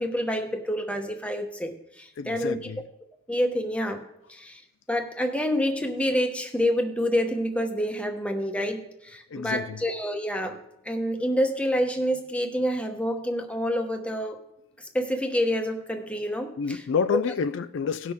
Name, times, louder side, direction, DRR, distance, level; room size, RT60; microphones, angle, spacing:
voice 1, 0.0-2.6 3.3-4.6 4.9-14.4 14.8-16.8, equal, 5° left, 1.0 m, -28 dB
voice 2, 2.2-2.8 9.3-9.8 16.6-18.1, left 6 dB, 65° left, 0.4 m, -28 dB
18.0 x 6.2 x 3.5 m
head